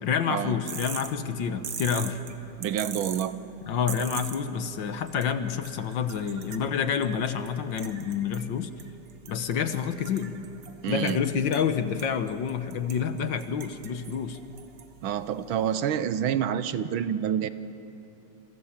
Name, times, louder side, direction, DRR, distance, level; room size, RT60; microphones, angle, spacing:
voice 1, 0.0-2.2 3.7-8.7 9.3-10.3 10.9-14.4, left 7 dB, 65° left, 10 dB, 1.6 m, -28 dB
sound 1, 0.7-15.7, right 7 dB, 55° right, 1.7 m, -44 dB
voice 2, 2.6-3.4 10.8-11.2 15.0-17.5, right 9 dB, 70° right, 13 dB, 1.5 m, -28 dB
28.0 x 26.0 x 7.3 m, 2.9 s
omnidirectional pair, 2.4 m